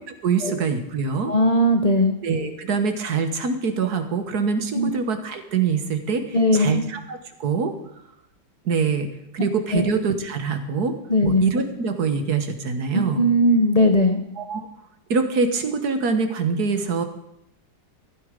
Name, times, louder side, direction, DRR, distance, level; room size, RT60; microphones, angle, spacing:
voice 1, 0.2-1.3 2.2-7.7 8.6-9.1 9.3-11.0 11.2-13.2 14.4-14.7 15.1-17.0, right 5 dB, 55° right, 8 dB, 1.7 m, -24 dB
voice 2, 1.3-2.1 4.7-4.9 6.3-6.8 9.7-9.9 11.1-11.4 12.9-14.2, left 1 dB, 40° left, 5 dB, 0.5 m, -18 dB
14.5 x 12.0 x 5.1 m, 0.80 s
omnidirectional pair, 2.1 m